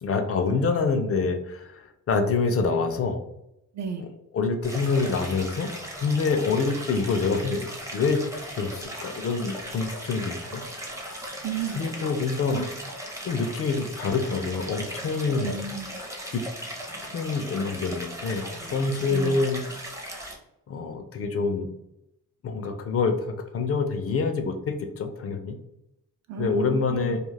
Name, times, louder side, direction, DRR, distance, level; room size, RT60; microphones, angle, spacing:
voice 1, 0.0-3.2 4.3-5.7 6.0-8.2 8.6-10.6 11.8-12.6 13.2-15.5 16.3-16.4 17.1-18.4 18.7-19.6 20.7-21.7 22.4-25.6 26.4-27.2, left 4 dB, 45° left, 5 dB, 0.4 m, -26 dB
voice 2, 3.7-4.1 11.4-11.9 12.5-12.7 15.4-16.0 19.1-19.4 26.3-27.2, right 7 dB, 55° right, 6 dB, 0.5 m, -33 dB
Stream, 4.6-20.4, equal, 10° right, 0.6 m, -38 dB
2.4 x 2.3 x 3.2 m, 0.83 s
cardioid pair, 115°, 33 cm